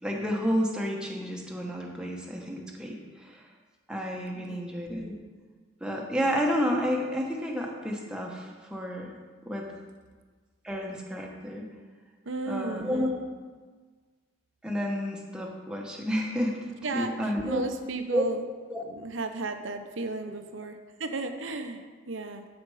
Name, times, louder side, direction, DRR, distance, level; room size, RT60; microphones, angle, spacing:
voice 1, 0.0-3.4 3.9-5.1 5.8-9.1 9.4-9.6 10.6-11.7 12.5-13.2 14.6-17.6 18.1-18.3 18.7-18.8 20.3-20.4, equal, 5° right, -1 dB, 1.0 m, -30 dB
voice 2, 4.3-4.7 12.2-13.1 16.8-18.5 18.8-22.5, right 3 dB, 70° right, 7 dB, 0.8 m, -34 dB
14.5 x 5.1 x 4.9 m, 1.5 s
head